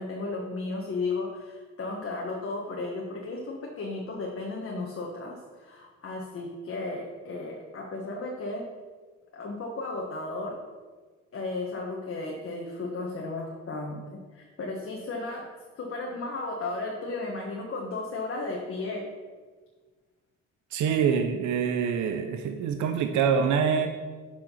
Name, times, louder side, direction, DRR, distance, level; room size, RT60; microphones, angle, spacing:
voice 1, 0.0-8.6 9.3-10.6 11.3-15.5 15.8-19.0, left 3 dB, 50° left, -1 dB, 1.4 m, -34 dB
voice 2, 20.7-23.9, right 7 dB, 75° right, 6 dB, 0.7 m, -25 dB
7.2 x 5.0 x 5.6 m, 1.4 s
cardioid pair, 90°, 30 cm